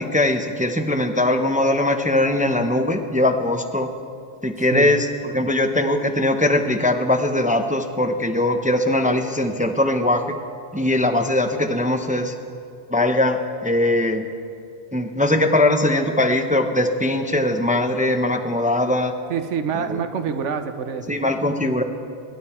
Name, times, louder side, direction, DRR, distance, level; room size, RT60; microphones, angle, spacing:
voice 1, 0.0-3.9 4.4-10.4 10.7-12.3 12.9-14.2 14.9-19.1 21.1-21.8, left 1 dB, 10° right, 6 dB, 0.5 m, -20 dB
voice 2, 19.3-21.2, right 6 dB, 70° right, 8 dB, 1.2 m, -26 dB
26.5 x 11.5 x 4.4 m, 2.5 s
omnidirectional pair, 1.3 m